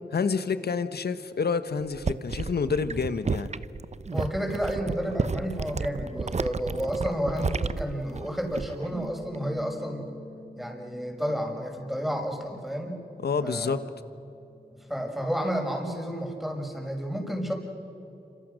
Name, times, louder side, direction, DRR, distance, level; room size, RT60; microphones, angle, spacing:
voice 1, 0.1-3.5 13.2-13.8, left 5 dB, 70° left, 12 dB, 1.2 m, -28 dB
sound 1, 1.8-8.9 9.2-9.6, right 4 dB, 40° right, 0.8 m, -32 dB
voice 2, 4.1-10.1 10.6-13.0 13.4-13.8 14.8-17.5, equal, ahead, 2 dB, 6.0 m, -31 dB
Bass guitar, 8.9-15.2, equal, 65° right, 3.9 m, -49 dB
28.0 x 26.0 x 6.5 m, 2.9 s
cardioid pair, 45°, 17 cm